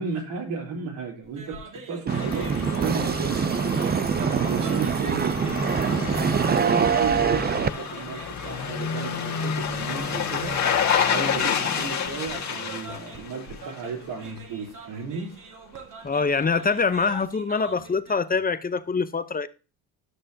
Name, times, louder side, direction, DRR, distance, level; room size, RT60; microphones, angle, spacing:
voice 1, 0.0-3.9 4.2-5.9 6.5-10.6 11.1-15.3, right 5 dB, 70° right, 3.8 m, -34 dB
sound 1, 1.2-18.1, right 5 dB, 45° right, 2.0 m, -44 dB
sound 2, 2.1-14.0 14.3-14.4, left 7 dB, 35° left, 1.9 m, -29 dB
sound 3, 2.1-7.7, right 6 dB, 20° right, 0.6 m, -24 dB
voice 2, 16.0-19.5, left 4 dB, 20° left, 0.8 m, -24 dB
12.5 x 6.5 x 2.8 m
hypercardioid pair, 70°, 45 cm